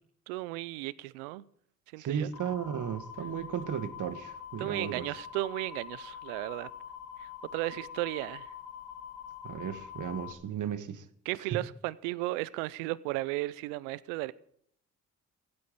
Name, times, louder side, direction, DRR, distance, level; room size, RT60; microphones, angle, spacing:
voice 1, 0.3-1.4 1.9-2.3 4.6-6.7 7.2-8.5 11.3-14.3, right 19 dB, 90° right, 0.5 m, -35 dB
voice 2, 2.0-5.1 9.4-11.1 11.4-11.6, right 8 dB, 55° right, 1.5 m, -35 dB
sound 1, 2.3-10.3, left 9 dB, 90° left, 1.5 m, -45 dB
16.0 x 8.7 x 9.0 m
hypercardioid pair, 50°, 36 cm